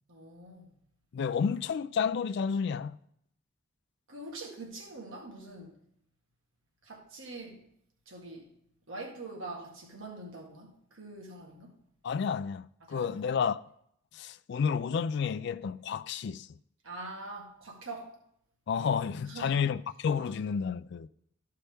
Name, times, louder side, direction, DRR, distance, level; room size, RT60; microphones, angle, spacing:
voice 1, 0.1-0.7 4.1-5.8 6.8-7.7 8.0-8.5 8.9-11.8 12.9-13.2 16.8-18.1 19.3-19.7, right 2 dB, 80° right, 1.8 m, -44 dB
voice 2, 1.1-3.0 12.0-13.6 14.1-16.5 18.7-21.1, left 6 dB, 60° left, 0.3 m, -31 dB
13.0 x 5.6 x 3.4 m
head